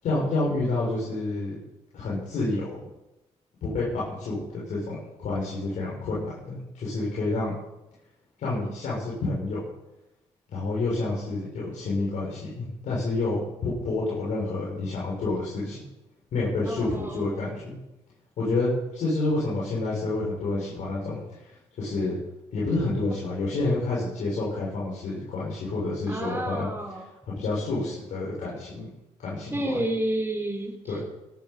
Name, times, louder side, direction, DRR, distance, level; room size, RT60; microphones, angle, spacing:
voice 1, 0.0-1.6 1.9-2.8 3.6-7.5 8.4-9.6 10.5-15.8 16.3-17.8 18.4-22.2 22.5-26.7 27.3-28.9 29.2-29.5 30.9-31.0, left 2 dB, 80° left, -7 dB, 6.6 m, -29 dB
voice 2, 16.6-17.4 26.1-27.1 29.5-31.0, right 1 dB, 20° right, -1 dB, 3.4 m, -30 dB
20.5 x 12.0 x 5.6 m, 0.94 s
cardioid pair, 70°, 12 cm